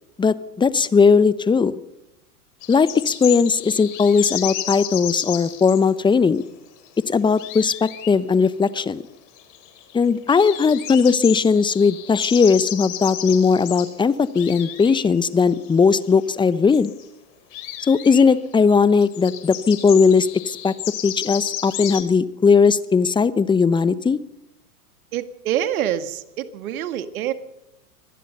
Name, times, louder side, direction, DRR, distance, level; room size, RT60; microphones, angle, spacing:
voice 1, 0.2-1.7 2.7-6.4 7.1-9.0 9.9-16.9 17.9-20.7 21.0-24.2, left 5 dB, 10° left, 17 dB, 0.8 m, -18 dB
sound 1, 2.6-5.9 6.9-7.0 7.1-8.1 8.4-8.5 8.8-8.9 9.4-10.0 10.3-13.9 14.2-15.0 15.3-16.2 16.5-17.1 17.5-18.2 18.7-18.8 19.0-22.0, left 13 dB, 40° left, 4.2 m, -32 dB
voice 2, 25.1-27.3, right 11 dB, 65° right, 11 dB, 2.1 m, -26 dB
25.0 x 19.0 x 5.5 m, 0.90 s
hypercardioid pair, 105°, 46 cm